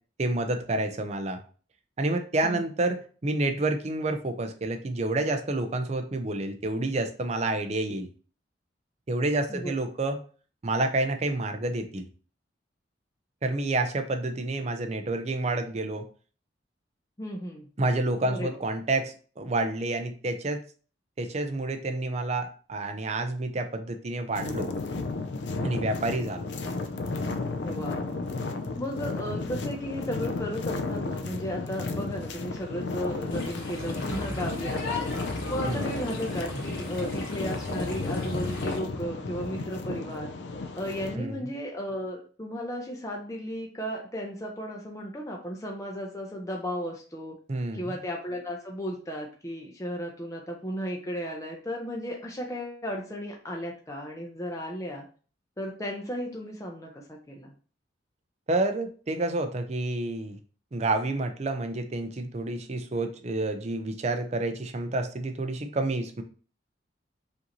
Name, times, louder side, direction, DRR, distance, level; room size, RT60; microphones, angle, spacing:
voice 1, 0.2-1.4 2.0-8.1 9.1-10.2 10.6-12.1 13.4-16.1 17.8-20.6 21.2-24.7 25.6-26.5 35.7-35.9 41.2-41.4 47.5-47.9 58.5-60.4 60.7-66.2, right 2 dB, 35° right, 6 dB, 0.5 m, -29 dB
voice 2, 17.2-17.7 18.2-18.6 27.6-28.2 28.8-35.0 35.5-40.3 40.8-47.4 47.7-55.1 55.6-57.5, equal, 15° left, 0 dB, 0.6 m, -35 dB
sound 1, 24.4-41.2, left 3 dB, 70° left, 0.5 m, -33 dB
sound 2, 33.3-38.8, left 2 dB, 85° left, 1.1 m, -37 dB
5.1 x 2.7 x 2.9 m, 0.40 s
head